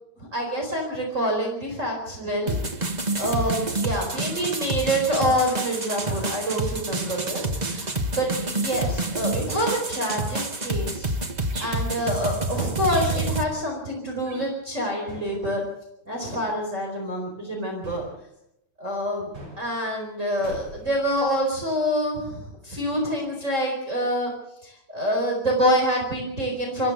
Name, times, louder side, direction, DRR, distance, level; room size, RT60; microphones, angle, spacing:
voice 1, 0.2-2.9 3.2-11.1 11.6-15.6 16.1-18.0 18.8-19.3 19.6-24.3 24.6-26.9, equal, 25° right, -1 dB, 4.7 m, -26 dB
sound 1, 2.5-13.4, right 2 dB, 50° right, 0.5 m, -28 dB
sound 2, 11.5-11.9 12.8-13.3 14.3-14.6 15.1-15.5 17.8-18.3 19.3-19.8 20.4-21.6, right 1 dB, 80° right, 8.0 m, -41 dB
24.0 x 15.0 x 7.9 m, 0.80 s
omnidirectional pair, 3.3 m